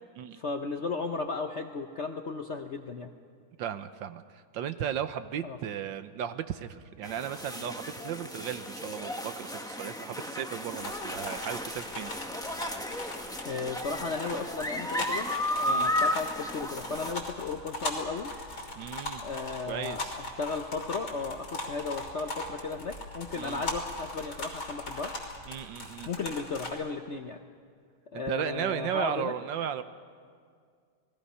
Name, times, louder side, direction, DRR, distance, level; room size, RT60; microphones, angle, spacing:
voice 1, 0.3-3.1 5.4-5.6 13.4-18.3 19.2-20.0 20.4-25.1 26.1-27.4 28.1-29.3, left 4 dB, 60° left, 5 dB, 0.7 m, -35 dB
voice 2, 3.6-12.1 15.7-15.9 18.7-19.2 19.7-20.1 23.4-23.6 25.5-26.1 28.1-29.8, right 9 dB, 70° right, 11 dB, 1.4 m, -35 dB
sound 1, 7.0-17.1, left 1 dB, 5° left, 0.8 m, -34 dB
sound 2, 10.8-26.7, left 2 dB, 85° left, 4.1 m, -39 dB
sound 3, 16.9-25.9, equal, 90° right, 8.9 m, -52 dB
29.5 x 20.0 x 5.6 m, 2.1 s
omnidirectional pair, 2.2 m